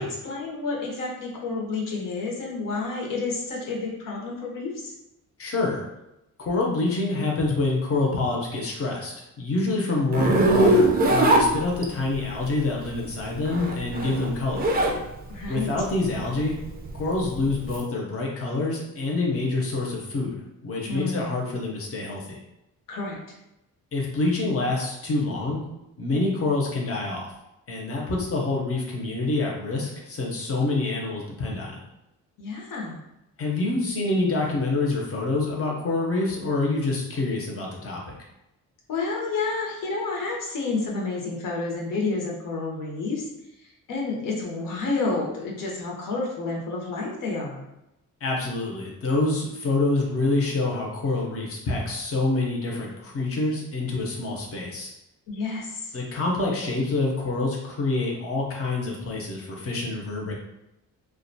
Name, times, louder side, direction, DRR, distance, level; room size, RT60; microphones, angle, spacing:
voice 1, 0.0-4.9 15.3-15.7 20.9-21.3 22.9-23.2 32.4-33.0 38.9-43.3 43.6-47.7 55.3-56.0, left 3 dB, 80° left, -2 dB, 0.7 m, -30 dB
voice 2, 5.4-5.9 6.4-14.6 15.5-16.6 16.9-20.3 20.6-22.2 23.9-25.6 26.0-27.3 27.7-31.8 33.4-38.0 48.2-54.9 55.9-60.3, left 2 dB, 45° left, -2 dB, 0.6 m, -26 dB
Zipper (clothing), 10.1-12.1 13.3-15.0 15.4-17.8, right 1 dB, 30° right, 0.4 m, -21 dB
2.4 x 2.1 x 2.6 m, 0.90 s
cardioid pair, 130°, 32 cm